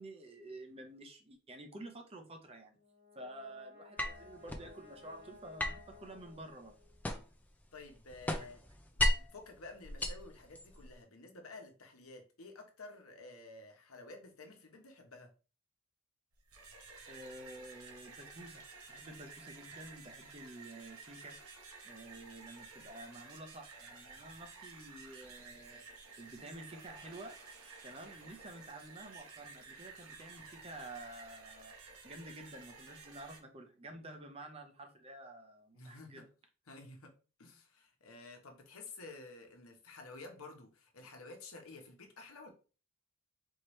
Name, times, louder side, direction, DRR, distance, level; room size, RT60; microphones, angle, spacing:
voice 1, 0.0-2.8 3.1-6.7 8.4-8.5 17.1-21.3 21.8-25.8 26.2-27.4 27.8-31.7 32.0-36.3, right 2 dB, 25° right, 0.7 m, -50 dB
Brass instrument, 2.7-7.1, left 5 dB, 40° left, 1.5 m, -58 dB
sound 1, 4.0-4.7 5.6-7.5 7.8-9.4 9.8-10.9, left 1 dB, 5° left, 0.4 m, -35 dB
voice 2, 7.7-8.6 9.0-15.3 35.7-36.2 36.7-37.1 37.4-42.5, left 3 dB, 75° left, 1.0 m, -52 dB
sound 2, 16.3-33.4, right 4 dB, 85° right, 1.1 m, -53 dB
4.5 x 3.1 x 3.1 m
head